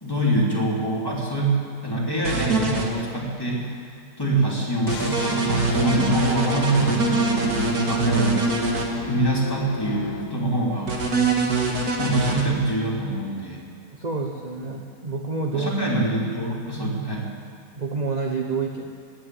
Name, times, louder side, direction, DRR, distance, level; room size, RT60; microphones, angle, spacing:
voice 1, 0.0-3.8 4.2-8.4 9.1-11.0 12.0-13.6 15.5-17.3, right 1 dB, 10° left, -5 dB, 3.1 m, -25 dB
sound 1, 2.2-2.9 4.9-8.8 10.9-12.4, right 3 dB, 60° right, 2.2 m, -23 dB
sound 2, 4.9-10.7, left 7 dB, 60° left, 1.5 m, -34 dB
voice 2, 13.9-15.7 17.8-18.9, right 4 dB, 35° right, 2 dB, 0.8 m, -28 dB
18.0 x 10.0 x 7.7 m, 2.2 s
omnidirectional pair, 1.9 m